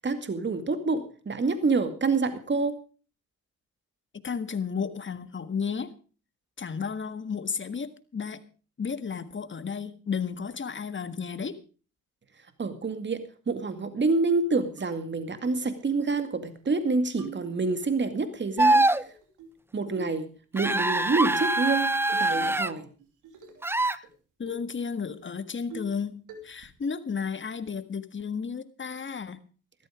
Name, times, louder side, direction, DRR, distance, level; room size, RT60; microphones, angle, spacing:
voice 1, 0.0-2.8 12.6-19.0 19.7-22.9, right 3 dB, 35° right, 10 dB, 2.2 m, -27 dB
voice 2, 4.1-5.9 6.6-8.4 8.8-11.6 23.9-24.1 24.4-26.2 26.4-29.4, left 6 dB, 40° left, 12 dB, 1.7 m, -33 dB
sound 1, 14.8-14.9 15.4-15.6 16.0-16.1 16.4-16.8 17.2-17.9 19.0-19.6 20.0-20.3 20.9-21.1 22.1-22.7 23.0-23.7 24.0-24.1 24.5-24.7 25.1-25.2 25.7-26.0 26.3-26.7, right 4 dB, 90° right, 2.7 m, -43 dB
sound 2, 18.6-19.0 20.6-22.7 23.6-24.0, right 2 dB, 10° right, 0.6 m, -23 dB
14.0 x 13.0 x 5.1 m, 0.38 s
supercardioid pair, 65°, 31 cm